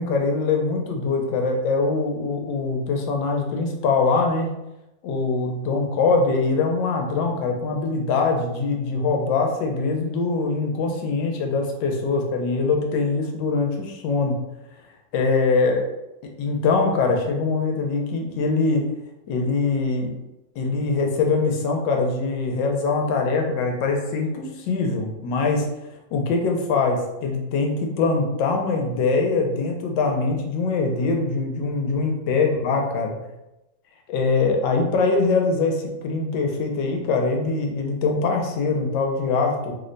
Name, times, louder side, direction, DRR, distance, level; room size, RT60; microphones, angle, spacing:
voice 1, 0.0-4.5 5.0-14.4 15.1-15.9 16.4-18.8 19.3-20.1 20.6-25.7 26.1-33.1 34.1-39.8, left 4 dB, 85° left, 2 dB, 1.3 m, -23 dB
3.2 x 2.1 x 3.8 m, 0.93 s
omnidirectional pair, 2.0 m